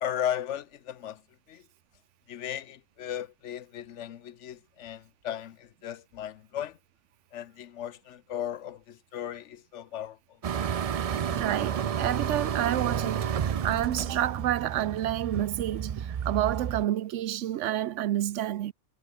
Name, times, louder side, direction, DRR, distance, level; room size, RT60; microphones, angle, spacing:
voice 1, 0.0-1.2 1.5-1.6 2.3-6.8 7.3-10.2, left 10 dB, 80° left, 1.1 m, -36 dB
sound 1, 10.4-16.8, right 8 dB, 50° right, 0.4 m, -31 dB
voice 2, 11.0-18.7, right 12 dB, 90° right, 1.0 m, -29 dB
omnidirectional pair, 1.2 m